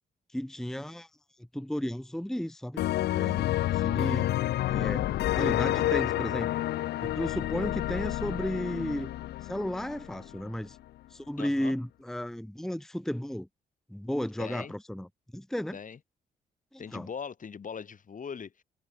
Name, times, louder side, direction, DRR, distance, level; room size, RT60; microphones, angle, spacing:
voice 1, 0.3-1.1 1.5-2.8 3.1-4.3 4.7-5.0 5.3-6.5 7.0-9.1 9.4-10.8 11.1-13.5 13.9-15.1 15.3-15.8 16.7-17.1, equal, ahead, 0.8 m, -34 dB
sound 1, 2.8-10.4, left 14 dB, 70° left, 0.4 m, -29 dB
voice 2, 11.4-11.8 14.4-14.7 15.7-16.0 16.8-18.6, left 6 dB, 50° left, 1.9 m, -40 dB
supercardioid pair, 55°, 18 cm